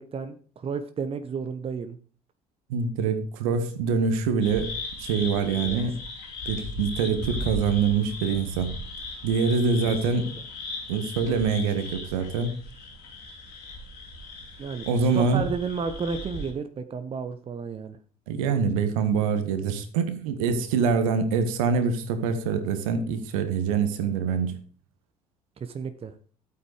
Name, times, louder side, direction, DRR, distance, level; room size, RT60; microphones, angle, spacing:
voice 1, 0.0-2.0 5.6-5.8 10.1-10.2 14.6-18.0 25.6-26.1, right 5 dB, 30° right, 1.0 m, -32 dB
voice 2, 2.7-4.7 5.0-6.0 6.4-8.7 9.2-10.3 10.9-12.6 14.9-15.4 18.3-24.5, right 5 dB, 65° right, 1.6 m, -25 dB
sound 1, 4.4-16.5, left 2 dB, 60° left, 4.4 m, -37 dB
12.5 x 8.3 x 4.9 m
figure-of-eight pair, 55°, 19 cm